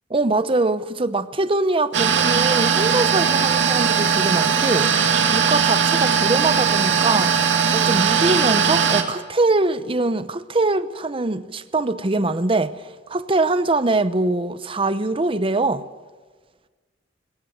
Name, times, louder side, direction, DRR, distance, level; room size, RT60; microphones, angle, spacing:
voice 1, 0.1-4.9 5.3-7.3 7.7-12.7 13.1-15.8, right 2 dB, 30° right, 0.8 m, -22 dB
sound 1, 1.9-9.0, right 6 dB, 75° right, 2.4 m, -19 dB
21.5 x 18.0 x 8.0 m
head